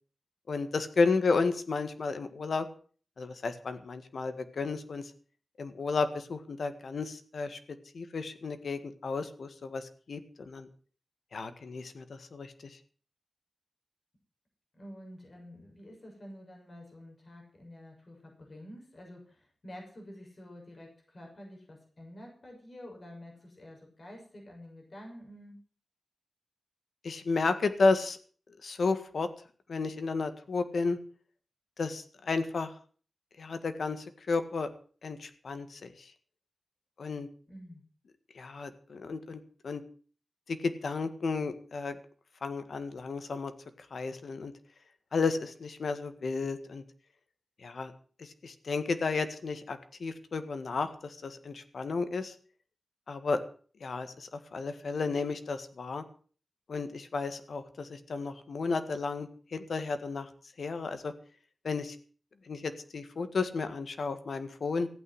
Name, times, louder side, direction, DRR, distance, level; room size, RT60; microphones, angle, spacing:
voice 1, 0.5-2.6 3.2-5.1 5.6-7.6 7.9-10.7 11.3-12.8 27.0-28.2 28.6-29.3 29.7-31.0 31.8-32.7 33.4-34.7 35.0-36.1 37.0-37.3 38.3-39.8 40.5-41.9 42.4-43.5 43.9-44.5 45.1-46.8 47.6-47.9 48.2-52.3 53.1-53.4 53.8-56.0 56.7-60.3 60.6-61.1 61.6-61.9 62.4-64.9, left 4 dB, 70° left, 9 dB, 1.8 m, -32 dB
voice 2, 14.7-25.6 37.5-37.8, left 1 dB, 40° left, 0 dB, 6.6 m, -49 dB
15.0 x 9.0 x 8.0 m, 0.43 s
wide cardioid pair, 125°, 0 cm